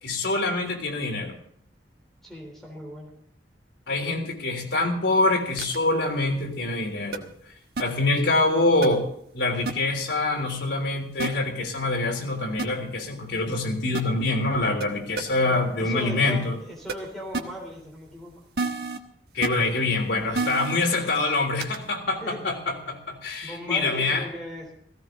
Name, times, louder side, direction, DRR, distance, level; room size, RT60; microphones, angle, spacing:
voice 1, 0.0-1.3 3.9-7.3 7.8-9.0 9.3-16.6 19.3-24.2, left 2 dB, 80° left, 1 dB, 3.6 m, -25 dB
voice 2, 2.2-3.1 15.5-18.3 22.2-22.4 23.4-24.7, left 1 dB, ahead, -1 dB, 3.5 m, -38 dB
sound 1, 5.6-5.8 7.1-7.2 7.8-7.9 8.8-8.9 9.7-9.8 11.2-11.3 12.6-12.7 13.9-14.0 14.8-14.9 15.2-15.3 16.9-17.0 17.3-17.4 18.6-19.0 19.4-19.5 20.3-20.8 21.6-21.8, right 3 dB, 60° right, 1.3 m, -28 dB
17.0 x 16.0 x 3.9 m, 0.66 s
head